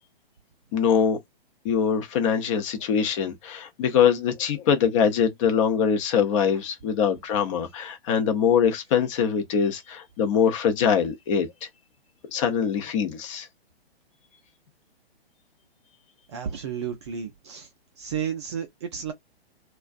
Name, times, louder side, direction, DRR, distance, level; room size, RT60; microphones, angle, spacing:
voice 1, 0.7-1.2 1.6-11.7 12.3-13.5, left 7 dB, 30° left, 0.7 m, -23 dB
voice 2, 16.3-17.7 18.0-19.1, right 8 dB, 30° right, 0.5 m, -32 dB
2.4 x 2.2 x 2.5 m
figure-of-eight pair, 125°, 31 cm